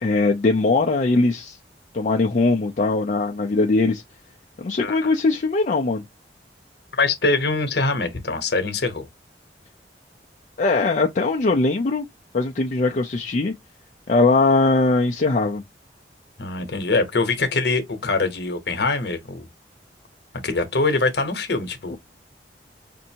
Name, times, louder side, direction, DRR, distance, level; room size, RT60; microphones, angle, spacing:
voice 1, 0.0-1.6 1.9-4.0 4.6-6.0 10.6-12.1 12.3-13.5 14.1-15.6 21.9-22.0, left 3 dB, 45° left, 0.4 m, -20 dB
voice 2, 6.9-9.1 16.4-19.5 20.4-22.0, left 3 dB, 65° left, 1.0 m, -23 dB
5.2 x 2.6 x 2.8 m
head